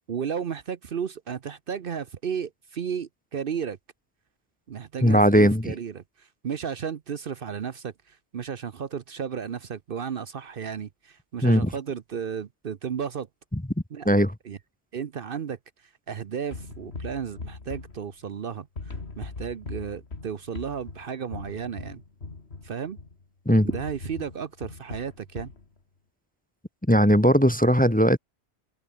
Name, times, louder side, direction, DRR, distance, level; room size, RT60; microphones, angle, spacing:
voice 1, 0.1-3.8 4.7-13.3 13.9-14.1 14.4-14.6 14.9-15.6 16.1-22.0 22.6-23.0 23.6-25.5, right 7 dB, 55° right, 0.9 m, -33 dB
voice 2, 5.0-5.7 11.4-11.7 14.1-14.3 23.5-23.7 26.9-28.2, equal, 10° left, 1.0 m, -18 dB
sound 1, 16.5-18.4 18.8-23.2 23.7-25.6, left 3 dB, 70° left, 2.8 m, -40 dB
open air
omnidirectional pair, 1.1 m